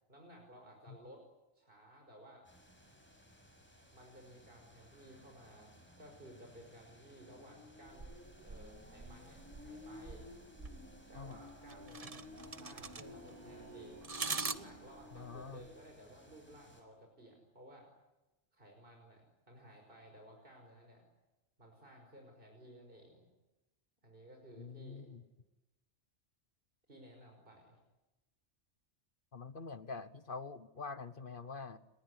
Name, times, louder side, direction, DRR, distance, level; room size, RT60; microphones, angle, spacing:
voice 1, 0.1-1.2 1.5-2.5 3.9-8.1 8.4-10.3 11.1-14.0 14.4-17.9 18.5-21.1 21.6-23.2 24.0-25.1 26.9-27.8, equal, 50° right, 2 dB, 5.7 m, -57 dB
sound 1, 2.5-16.8, left 1 dB, 10° left, 6.2 m, -56 dB
sound 2, 7.9-15.7, right 4 dB, 30° right, 1.2 m, -45 dB
sound 3, 12.2-15.2, equal, 75° right, 2.2 m, -58 dB
voice 2, 15.1-15.7 24.6-25.2 29.3-31.8, left 4 dB, 50° left, 13 dB, 1.3 m, -46 dB
30.0 x 20.5 x 9.7 m, 1.0 s
omnidirectional pair, 1.2 m